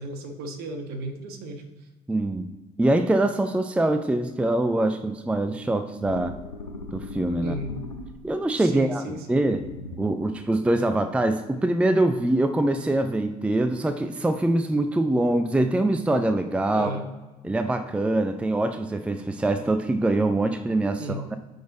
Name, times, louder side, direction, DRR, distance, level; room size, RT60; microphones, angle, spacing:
voice 1, 0.0-1.9 7.4-7.8 8.6-9.4 16.7-17.1 21.0-21.3, right 1 dB, 55° right, 6 dB, 1.3 m, -35 dB
voice 2, 2.1-2.5 2.8-6.4 6.9-7.5 8.2-9.0 9.3-9.6 10.0-16.9 17.4-21.4, right 1 dB, 5° right, 9 dB, 0.5 m, -24 dB
sound 1, 6.0-8.5 9.4-10.4, left 3 dB, 85° left, 0.6 m, -39 dB
9.3 x 4.1 x 4.0 m, 1.2 s
figure-of-eight pair, 55°, 20 cm